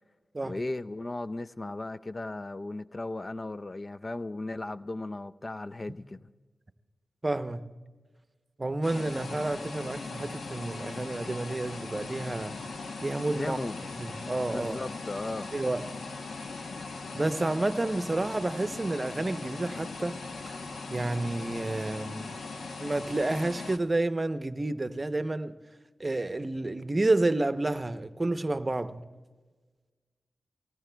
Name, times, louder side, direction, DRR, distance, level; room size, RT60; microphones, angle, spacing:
voice 1, 0.4-6.3 13.4-13.8 14.5-15.5, left 2 dB, 40° left, 0.4 m, -36 dB
voice 2, 7.2-7.7 8.6-12.6 13.0-13.6 14.0-14.8 15.5-15.8 17.1-20.2 20.9-22.3 22.8-25.6 26.0-29.1, right 2 dB, 30° right, 0.7 m, -30 dB
sound 1, 8.8-23.8, left 3 dB, 85° left, 0.9 m, -39 dB
24.5 x 18.5 x 2.3 m
cardioid pair, 45°, 0 cm